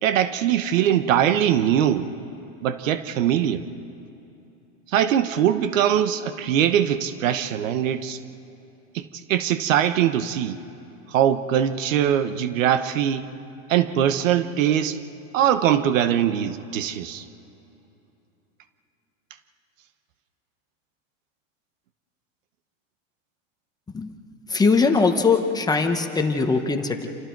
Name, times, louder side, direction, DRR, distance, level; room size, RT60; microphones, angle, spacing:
voice 1, 0.0-2.1 2.6-3.6 4.9-8.2 8.9-10.6 11.1-13.2 13.7-15.0 15.3-17.2, right 10 dB, 90° right, 11 dB, 1.1 m, -22 dB
voice 2, 24.5-27.1, left 4 dB, 10° left, 5 dB, 1.0 m, -21 dB
28.5 x 27.5 x 4.6 m, 2.8 s
supercardioid pair, 145°, 38 cm